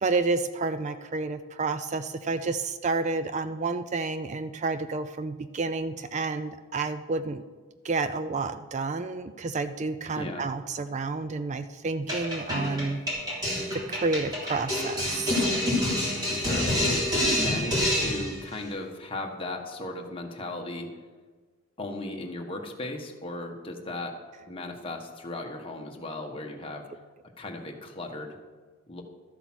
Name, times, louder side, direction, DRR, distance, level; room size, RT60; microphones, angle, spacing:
voice 1, 0.0-7.4 7.8-13.0 13.7-15.5, right 3 dB, 35° right, 11 dB, 0.4 m, -30 dB
voice 2, 10.1-10.5 16.3-20.9 21.8-24.2 24.5-26.8 27.4-28.4 28.9-29.0, left 2 dB, 25° left, 2 dB, 1.4 m, -36 dB
sound 1, 12.1-18.4, left 1 dB, 20° right, 3.7 m, -27 dB
13.0 x 8.0 x 6.2 m, 1.4 s
head